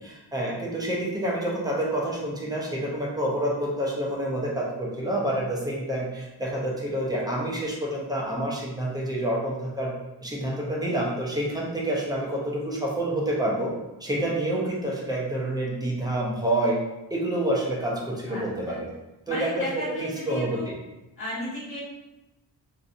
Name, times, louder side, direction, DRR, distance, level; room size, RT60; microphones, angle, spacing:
voice 1, 0.0-9.9 10.2-13.7 14.0-16.8 17.1-18.9 19.3-20.7, right 1 dB, 10° right, -4 dB, 0.7 m, -28 dB
voice 2, 18.3-18.8 19.3-20.7 21.2-21.8, left 1 dB, 30° left, -7 dB, 1.4 m, -34 dB
3.0 x 2.8 x 2.6 m, 0.98 s
wide cardioid pair, 110°, 43 cm